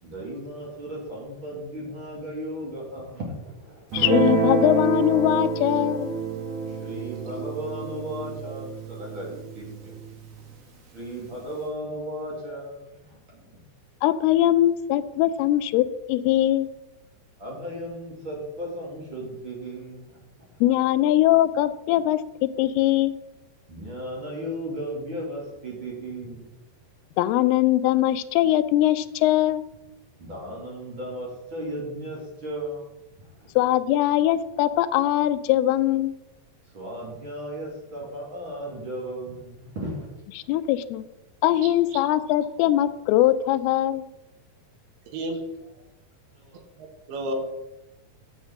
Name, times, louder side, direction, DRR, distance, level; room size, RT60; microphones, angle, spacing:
voice 1, 0.0-3.9 6.7-10.0 10.9-13.4 17.4-20.2 23.7-26.5 30.2-32.9 33.2-33.5 36.7-40.1 46.4-46.6, right 1 dB, 35° right, -4 dB, 2.5 m, -35 dB
voice 2, 3.9-6.1 14.0-16.7 20.6-22.2 22.6-23.2 27.2-29.6 33.6-36.1 40.4-41.0 41.4-44.1, left 13 dB, 85° left, 11 dB, 2.5 m, -21 dB
Guitar, 3.9-10.5, right 4 dB, 55° right, 1.9 m, -28 dB
voice 3, 46.8-47.4, equal, 80° right, 3 dB, 3.0 m, -31 dB
6.5 x 6.0 x 7.4 m, 0.93 s
omnidirectional pair, 4.5 m